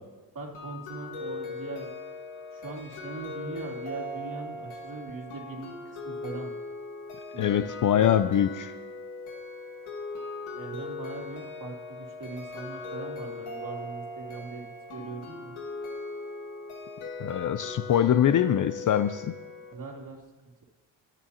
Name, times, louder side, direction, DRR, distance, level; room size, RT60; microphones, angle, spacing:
voice 1, 0.3-1.9 2.5-6.5 7.3-7.7 7.9-8.1 10.5-15.5 19.7-20.2, right 3 dB, 40° right, 0 dB, 2.8 m, -40 dB
sound 1, 0.5-19.7, left 3 dB, 80° left, 2.0 m, -39 dB
voice 2, 7.4-8.7 17.2-19.3, left 10 dB, 40° left, 12 dB, 0.5 m, -23 dB
24.0 x 9.2 x 2.9 m, 1.2 s
cardioid pair, 85°, 48 cm